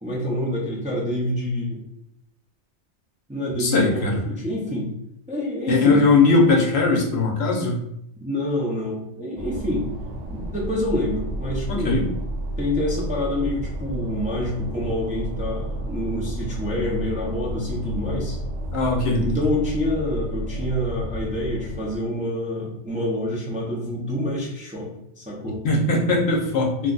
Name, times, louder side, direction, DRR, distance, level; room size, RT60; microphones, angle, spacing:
voice 1, 0.0-1.8 3.3-4.9 5.3-6.1 8.2-9.9 10.3-12.0 12.6-18.4 19.2-25.6, left 1 dB, 10° right, -5 dB, 0.5 m, -27 dB
voice 2, 3.6-4.2 5.7-7.8 11.7-12.0 18.7-19.3 25.6-26.9, left 3 dB, 65° left, -1 dB, 0.9 m, -20 dB
sound 1, 9.4-22.0, right 1 dB, 80° right, 1.0 m, -31 dB
2.5 x 2.2 x 3.8 m, 0.77 s
omnidirectional pair, 1.2 m